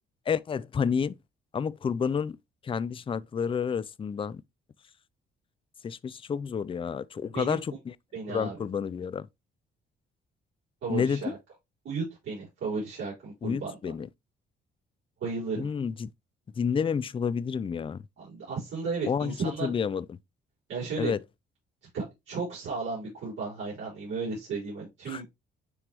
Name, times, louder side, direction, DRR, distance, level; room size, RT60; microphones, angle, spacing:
voice 1, 0.3-1.2 1.5-2.4 2.6-4.4 5.8-7.9 8.3-9.3 10.9-11.3 13.4-14.1 15.6-16.1 16.6-18.0 19.1-20.2 21.0-21.2 25.1-25.2, left 6 dB, 25° left, 0.4 m, -30 dB
voice 2, 8.1-8.6 10.8-11.4 11.8-13.7 15.2-15.7 18.2-19.7 20.7-21.1 21.9-25.2, right 4 dB, 75° right, 4.3 m, -34 dB
9.8 x 3.4 x 2.9 m
cardioid pair, 90°, 20 cm